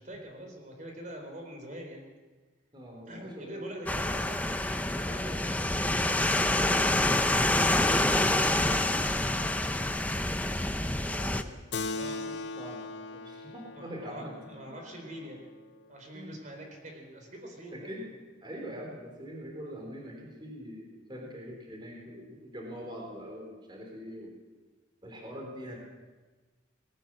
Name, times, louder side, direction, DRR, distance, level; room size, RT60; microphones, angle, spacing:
voice 1, 0.0-2.0 3.1-4.4 4.7-7.5 7.8-10.3 11.9-12.4 13.7-15.4 15.9-17.9, equal, 40° right, 2 dB, 4.1 m, -44 dB
voice 2, 2.7-3.6 10.7-11.5 12.6-12.8 13.1-14.3 16.1-16.3 17.7-18.1 18.4-24.3 25.0-25.8, equal, 25° right, 0 dB, 3.9 m, -43 dB
sound 1, 3.9-11.4, left 1 dB, 10° left, 0.8 m, -27 dB
Keyboard (musical), 11.7-16.6, left 3 dB, 65° left, 0.9 m, -40 dB
20.5 x 18.0 x 7.7 m, 1.3 s
head